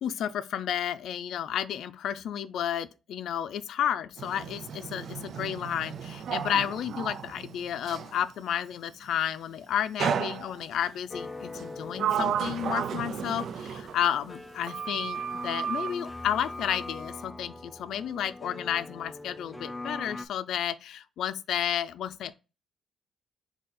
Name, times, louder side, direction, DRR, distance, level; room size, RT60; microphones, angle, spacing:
voice 1, 0.0-22.3, left 10 dB, 70° left, 0.4 m, -32 dB
Sliding door, 4.2-8.2 10.0-10.9 11.5-14.4 14.7-16.0, right 8 dB, 60° right, 0.3 m, -33 dB
sound 1, 11.1-20.3, left 2 dB, 5° left, 0.4 m, -42 dB
3.9 x 2.8 x 4.2 m
cardioid pair, 110°, 0 cm